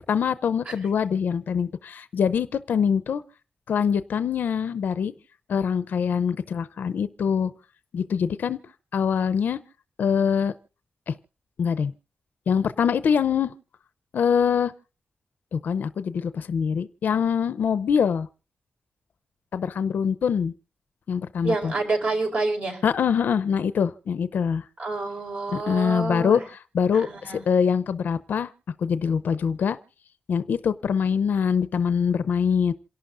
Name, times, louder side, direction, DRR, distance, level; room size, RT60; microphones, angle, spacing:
voice 1, 0.1-3.2 3.7-5.1 5.5-7.5 7.9-8.6 8.9-9.6 10.0-10.5 11.1-11.2 11.6-11.9 12.5-13.5 14.1-14.7 15.5-18.3 19.5-20.5 21.1-21.7 22.8-24.6 25.5-28.5 28.8-29.8 30.3-32.7, left 7 dB, 90° left, 14 dB, 0.6 m, -24 dB
voice 2, 21.4-22.8 24.8-26.4 26.9-27.4, right 3 dB, 50° right, 3 dB, 4.6 m, -28 dB
27.5 x 11.5 x 2.5 m, 0.34 s
wide cardioid pair, 170°, 3 cm